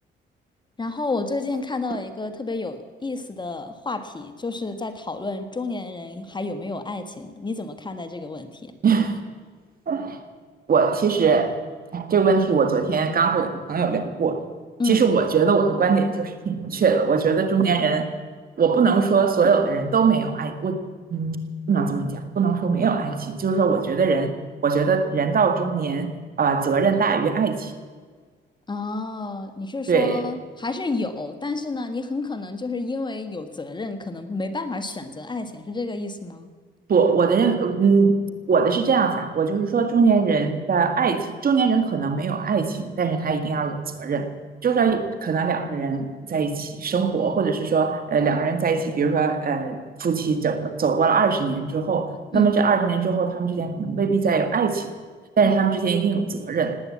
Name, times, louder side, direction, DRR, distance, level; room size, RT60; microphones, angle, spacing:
voice 1, 0.8-8.7 14.8-15.0 28.7-36.5 52.3-52.5 55.4-55.5, left 3 dB, 20° left, 9 dB, 1.5 m, -30 dB
voice 2, 8.8-9.2 9.9-10.2 10.7-11.6 11.9-14.4 14.8-18.1 18.6-21.4 21.7-24.3 24.6-27.7 29.9-30.3 36.9-38.2 38.5-44.3 44.6-54.9 55.4-56.8, right 5 dB, 45° right, 8 dB, 1.7 m, -21 dB
19.0 x 8.9 x 8.5 m, 1.5 s
cardioid pair, 90°, 20 cm